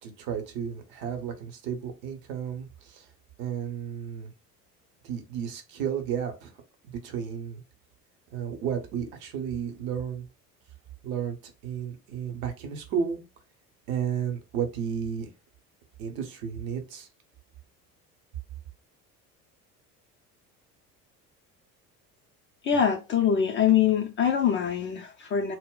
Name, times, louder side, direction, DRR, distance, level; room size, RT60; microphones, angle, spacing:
voice 1, 0.0-3.1 3.4-4.3 5.0-6.6 6.8-7.6 8.3-10.3 11.0-13.2 13.9-15.3 16.0-17.1, right 8 dB, 60° right, 0.9 m, -33 dB
voice 2, 22.6-25.5, left 8 dB, 25° left, 0.4 m, -24 dB
2.1 x 2.1 x 3.6 m
figure-of-eight pair, 65°, 48 cm